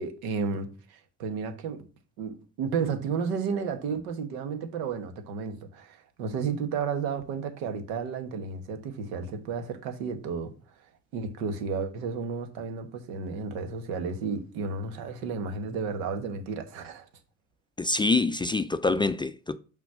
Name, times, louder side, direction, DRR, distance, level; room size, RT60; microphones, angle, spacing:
voice 1, 0.0-1.8 2.2-10.5 11.1-17.0, right 5 dB, 75° right, 1.6 m, -32 dB
voice 2, 17.8-19.6, left 3 dB, 15° left, 0.4 m, -25 dB
5.9 x 4.5 x 6.3 m
hypercardioid pair, 70°, 37 cm